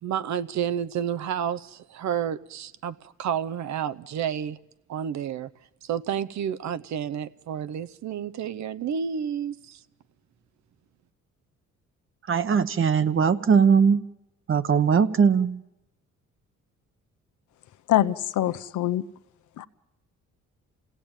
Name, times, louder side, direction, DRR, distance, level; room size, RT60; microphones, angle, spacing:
voice 1, 0.0-4.6 4.9-5.5 5.8-9.8, right 8 dB, 65° right, 14 dB, 0.8 m, -30 dB
voice 2, 12.3-14.0 14.5-15.6, right 6 dB, 45° right, 13 dB, 1.1 m, -20 dB
voice 3, 17.9-19.0 19.6-19.7, left 13 dB, 75° left, 13 dB, 0.9 m, -24 dB
27.5 x 17.0 x 8.9 m, 0.99 s
cardioid pair, 90°, 30 cm